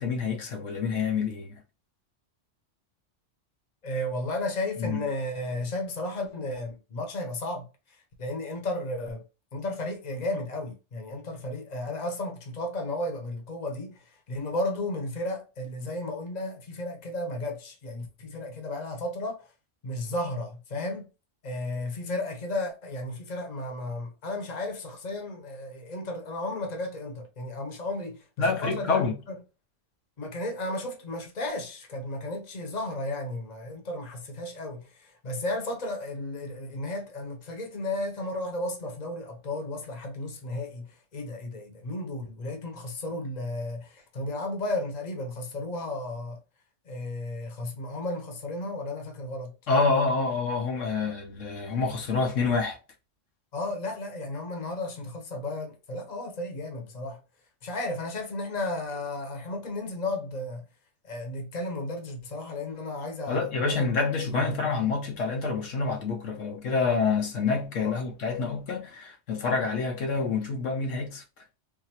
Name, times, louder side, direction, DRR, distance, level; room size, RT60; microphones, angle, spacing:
voice 1, 0.0-1.6 4.8-5.0 28.4-29.2 49.7-52.8 63.3-71.2, left 4 dB, 80° left, 1.2 m, -27 dB
voice 2, 3.8-9.2 9.5-19.5 19.8-21.1 21.4-29.0 30.2-46.4 46.8-49.5 53.5-57.2 57.6-60.6 61.0-63.9 64.3-64.8 67.8-67.9, left 2 dB, 35° left, 1.0 m, -34 dB
3.7 x 2.7 x 2.8 m
omnidirectional pair, 1.3 m